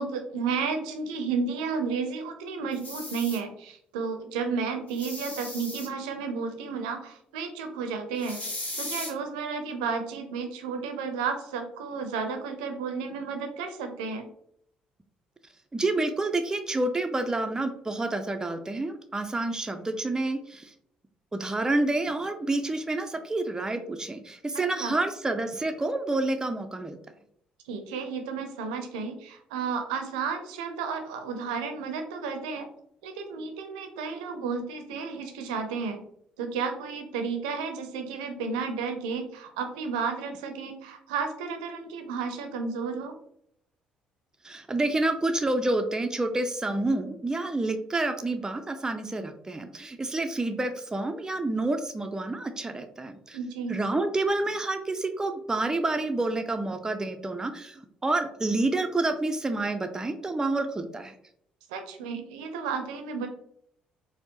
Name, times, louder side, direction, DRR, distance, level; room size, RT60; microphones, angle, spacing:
voice 1, 0.0-8.4 8.8-14.3 24.5-25.0 27.6-32.7 33.0-36.0 36.4-43.1 53.3-53.8 61.7-63.3, right 5 dB, 80° right, 6 dB, 0.5 m, -32 dB
sound 1, 2.7-3.4 4.9-5.9 8.2-9.1, left 1 dB, 35° left, 1.5 m, -37 dB
voice 2, 15.7-20.7 21.3-27.0 44.4-53.4 53.7-61.1, right 2 dB, 15° right, 6 dB, 0.4 m, -28 dB
4.3 x 2.1 x 2.9 m, 0.70 s
hypercardioid pair, 50°, 4 cm